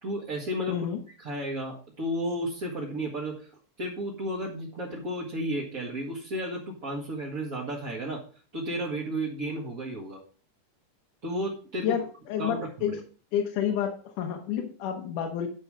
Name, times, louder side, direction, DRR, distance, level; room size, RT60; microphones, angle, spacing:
voice 1, 0.0-0.8 1.2-3.5 3.8-8.2 8.5-10.2 11.2-11.9 12.4-13.0, equal, 35° right, -4 dB, 1.5 m, -33 dB
voice 2, 0.7-1.0 11.8-13.0 13.3-15.5, left 9 dB, 80° left, 4 dB, 2.5 m, -30 dB
10.5 x 5.5 x 4.9 m, 0.39 s
omnidirectional pair, 3.6 m